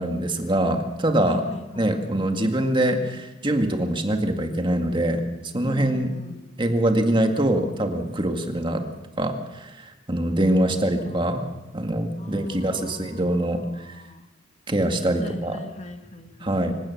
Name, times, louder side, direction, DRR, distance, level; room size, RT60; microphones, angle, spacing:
voice 1, 0.0-1.4 1.8-5.2 5.5-6.1 6.6-8.8 9.2-11.4 11.7-14.0 14.7-15.6 16.4-16.8, right 1 dB, 25° right, 5 dB, 2.0 m, -24 dB
voice 2, 1.3-1.9 5.6-6.4 10.6-11.5 12.2-14.3 15.2-16.6, left 1 dB, 35° left, 6 dB, 1.9 m, -40 dB
26.0 x 17.0 x 7.2 m, 1.0 s
head